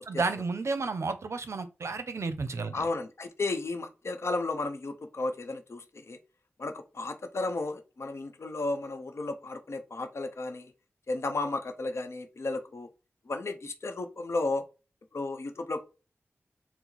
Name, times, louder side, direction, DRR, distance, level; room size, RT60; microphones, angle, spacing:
voice 1, 0.0-2.8, right 4 dB, 70° right, 0.6 m, -32 dB
voice 2, 2.7-6.2 6.6-10.7 11.1-12.9 13.3-14.6 15.1-15.8, left 2 dB, 65° left, 0.7 m, -33 dB
4.4 x 2.0 x 4.0 m
wide cardioid pair, 95°, 5 cm